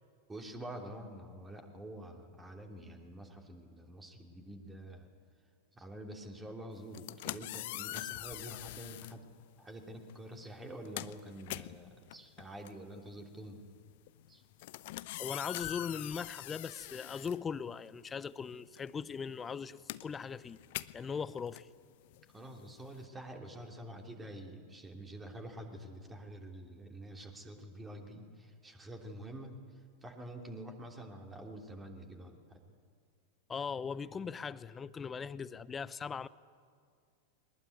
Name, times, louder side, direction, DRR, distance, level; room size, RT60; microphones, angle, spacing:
voice 1, 0.3-5.1 5.7-9.2 9.6-13.6 14.3-14.4 22.3-29.5 30.0-32.6, right 1 dB, 15° right, 3.1 m, -47 dB
sound 1, 6.8-9.2 10.1-10.3 10.6-18.1 18.4-23.0, left 18 dB, 50° left, 0.7 m, -44 dB
voice 2, 15.2-20.6 20.9-21.7 33.5-36.3, left 6 dB, 20° left, 0.7 m, -39 dB
22.0 x 20.0 x 9.6 m
figure-of-eight pair, 90°, 0 cm